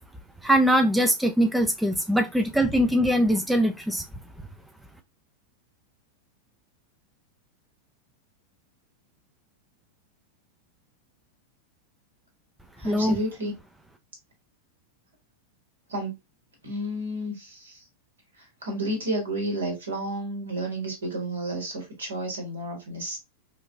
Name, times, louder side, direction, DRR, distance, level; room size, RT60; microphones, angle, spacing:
voice 1, 0.4-4.0 12.8-13.2, equal, 5° right, 0.4 m, -22 dB
voice 2, 12.8-13.5 15.9-16.1 16.6-17.8 18.3-23.2, right 1 dB, 70° right, 1.5 m, -31 dB
4.4 x 2.4 x 2.3 m
figure-of-eight pair, 90°, 0 cm